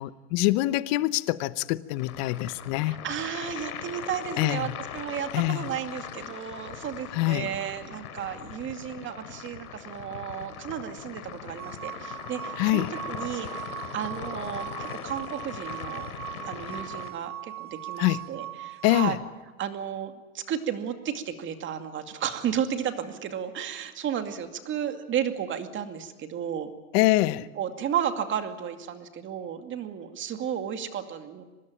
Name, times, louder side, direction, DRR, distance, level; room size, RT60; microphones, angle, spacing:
voice 1, 0.0-2.9 4.4-4.7 5.3-5.7 7.1-7.5 12.6-12.9 18.0-18.2 18.8-19.2 26.9-27.5, left 18 dB, 45° left, 16 dB, 1.0 m, -25 dB
sound 1, 2.0-17.1, left 8 dB, 85° left, 3.2 m, -40 dB
voice 2, 2.8-16.1 16.5-19.2 19.6-26.7 27.6-31.4, right 9 dB, 25° right, 7 dB, 2.3 m, -33 dB
sound 2, 11.6-19.1, right 14 dB, 90° right, 1.1 m, -40 dB
24.5 x 20.5 x 9.0 m, 1.2 s
supercardioid pair, 135°, 43 cm